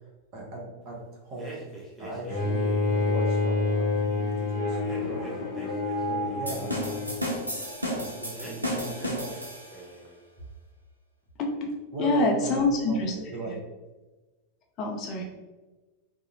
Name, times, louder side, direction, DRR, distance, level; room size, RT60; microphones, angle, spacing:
voice 1, 0.3-1.0 1.2-1.6 2.0-5.2 5.5-5.7 6.0-7.3 7.8-9.3 11.9-13.0 13.3-13.5, right 2 dB, 40° right, -2 dB, 0.8 m, -38 dB
sound 1, 1.4-3.2 4.8-6.7 8.3-9.4 9.7-10.2, right 1 dB, ahead, 0.6 m, -45 dB
Bowed string instrument, 2.3-7.3, left 3 dB, 55° left, 0.8 m, -28 dB
sound 2, 6.5-9.9, equal, 85° right, 0.5 m, -33 dB
voice 2, 12.0-13.1 14.8-15.3, left 2 dB, 35° left, 1 dB, 0.4 m, -26 dB
2.4 x 2.0 x 2.8 m, 1.2 s
figure-of-eight pair, 90°, 0 cm